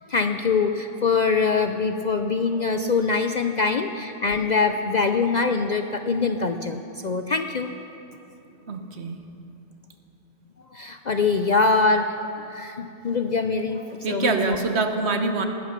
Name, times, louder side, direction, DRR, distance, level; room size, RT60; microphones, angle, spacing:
voice 1, 0.0-7.7 10.7-14.6, left 4 dB, 50° left, 7 dB, 0.5 m, -23 dB
voice 2, 8.7-9.3 14.0-15.5, right 3 dB, 65° right, 6 dB, 1.3 m, -25 dB
19.0 x 11.5 x 5.9 m, 2.8 s
omnidirectional pair, 1.2 m